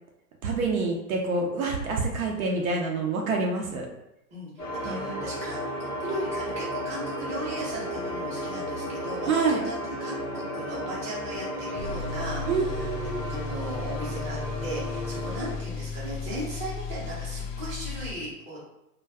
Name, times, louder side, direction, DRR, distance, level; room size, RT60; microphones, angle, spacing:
voice 1, 0.4-3.9 4.9-5.2 9.3-9.6 12.5-13.1, right 3 dB, 60° right, 0 dB, 0.6 m, -27 dB
voice 2, 4.3-13.0 13.3-18.7, right 1 dB, 15° right, -7 dB, 0.7 m, -37 dB
sound 1, 4.6-15.6, equal, 20° left, 0.4 m, -34 dB
sound 2, 11.8-18.1, left 4 dB, 75° left, 0.6 m, -35 dB
2.2 x 2.2 x 3.3 m, 0.87 s
hypercardioid pair, 140°, 49 cm